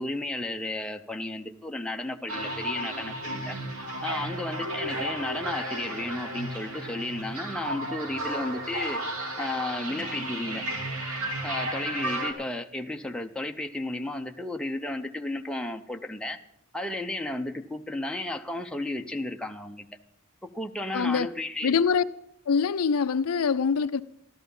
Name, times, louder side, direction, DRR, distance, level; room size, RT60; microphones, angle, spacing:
voice 1, 0.0-3.6 4.0-9.0 9.4-10.6 11.4-16.4 16.7-19.9 20.4-21.7, left 2 dB, 5° left, 0.6 m, -33 dB
sound 1, 2.3-12.3, right 1 dB, 85° right, 2.4 m, -33 dB
voice 2, 20.9-21.3 21.6-22.0 22.5-24.0, left 5 dB, 75° left, 0.4 m, -24 dB
14.0 x 12.5 x 5.4 m
head